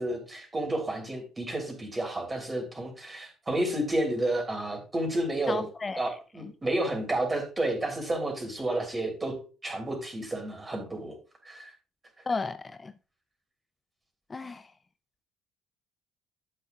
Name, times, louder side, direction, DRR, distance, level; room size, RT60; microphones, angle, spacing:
voice 1, 0.0-5.6 6.0-9.4 9.6-11.1 11.4-11.7, right 1 dB, 20° right, 3.3 m, -31 dB
voice 2, 5.5-6.1 12.3-13.0 14.3-14.7, left 3 dB, 25° left, 0.4 m, -33 dB
11.5 x 6.5 x 2.4 m
figure-of-eight pair, 50°, 0 cm